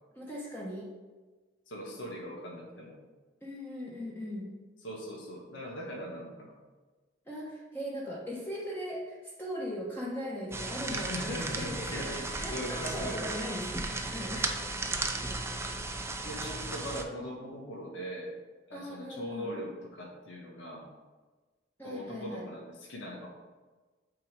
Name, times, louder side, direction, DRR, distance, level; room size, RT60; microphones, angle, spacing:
voice 1, 0.1-0.9 3.4-4.5 7.3-14.6 18.7-19.5 21.8-22.4, equal, 10° left, -5 dB, 1.1 m, -39 dB
voice 2, 1.7-3.0 4.8-6.5 10.9-13.2 16.2-18.3 18.7-20.9 21.8-23.3, equal, 80° left, -2 dB, 1.3 m, -40 dB
sound 1, 10.5-17.0, right 2 dB, 15° right, 0.5 m, -35 dB
8.4 x 3.8 x 4.7 m, 1.3 s
head